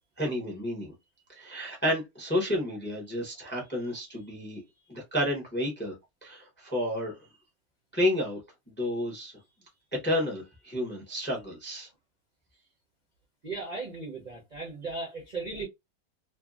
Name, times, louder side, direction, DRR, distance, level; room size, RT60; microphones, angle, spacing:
voice 1, 0.2-0.9 1.3-4.6 4.9-5.9 6.2-7.1 7.9-8.4 8.7-9.4 10.0-11.9, left 1 dB, 10° left, 0.6 m, -31 dB
voice 2, 13.4-15.7, right 3 dB, 45° right, 0.5 m, -36 dB
2.7 x 2.6 x 2.4 m
omnidirectional pair, 1.7 m